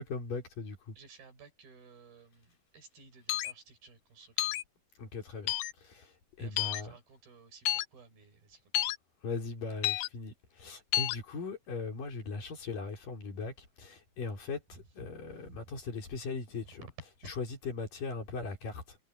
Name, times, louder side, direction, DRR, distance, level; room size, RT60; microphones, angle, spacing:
voice 1, 0.0-1.0 5.0-7.0 9.2-16.9 17.2-19.0, left 4 dB, 55° left, 6.1 m, -39 dB
voice 2, 1.0-4.6 6.4-8.9 14.7-14.8 15.4-15.6 16.8-16.9 17.2-17.3, right 5 dB, 65° right, 7.5 m, -55 dB
sound 1, 3.3-3.5 4.4-4.6 5.5-5.7 6.6-6.8 7.7-7.9 8.7-9.0 9.8-10.1 10.9-11.2, left 15 dB, 75° left, 2.0 m, -30 dB
omnidirectional pair, 4.6 m